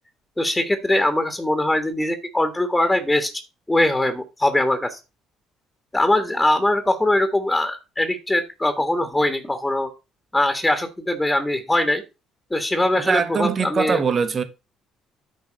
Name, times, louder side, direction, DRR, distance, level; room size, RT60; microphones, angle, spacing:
voice 1, 0.4-3.3 3.7-5.0 5.9-9.9 10.3-12.0 12.5-14.0, left 1 dB, 15° left, 1.6 m, -21 dB
voice 2, 13.1-14.4, right 6 dB, 45° right, 1.6 m, -22 dB
10.0 x 3.9 x 6.6 m
hypercardioid pair, 50°, 0 cm